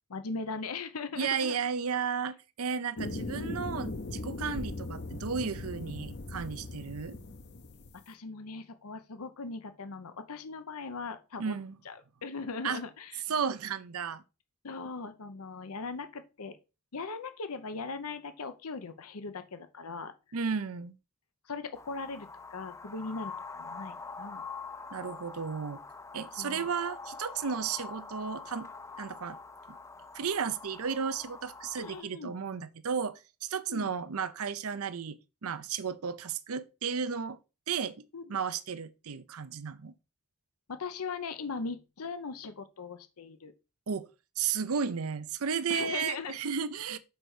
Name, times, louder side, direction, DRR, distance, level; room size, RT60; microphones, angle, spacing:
voice 1, 0.1-1.6 3.0-3.2 8.1-11.5 11.8-13.2 14.6-16.6 16.9-20.1 21.4-24.4 25.0-25.2 26.4-26.7 31.8-32.3 33.7-33.9 38.1-38.3 40.7-43.5 45.7-46.4 46.9-47.0, left 4 dB, 90° left, 0.8 m, -39 dB
voice 2, 1.2-7.2 11.4-11.8 12.6-12.8 13.3-14.2 20.3-20.9 24.9-25.8 26.1-28.7 29.0-29.4 29.7-29.8 30.1-37.4 37.7-39.9 43.9-44.1 44.4-47.0, right 6 dB, 75° right, 0.6 m, -34 dB
sound 1, 3.0-8.0, left 2 dB, 50° left, 0.8 m, -39 dB
sound 2, 21.7-32.0, left 4 dB, 15° left, 0.3 m, -45 dB
6.7 x 4.4 x 4.9 m
head